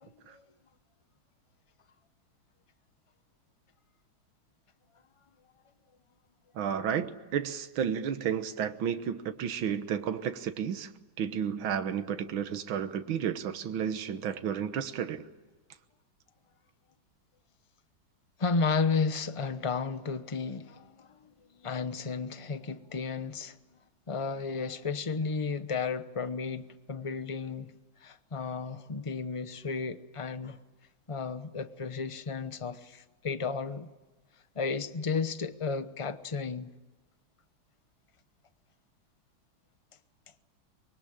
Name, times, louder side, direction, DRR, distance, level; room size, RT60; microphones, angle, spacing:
voice 1, 0.0-0.4 18.4-23.6 24.1-27.7 28.0-30.6 31.1-33.9 34.5-36.7, left 4 dB, 30° left, 0.6 m, -33 dB
voice 2, 6.6-10.9 11.2-15.3, right 8 dB, 75° right, 2.0 m, -32 dB
25.0 x 23.5 x 8.8 m
omnidirectional pair, 2.2 m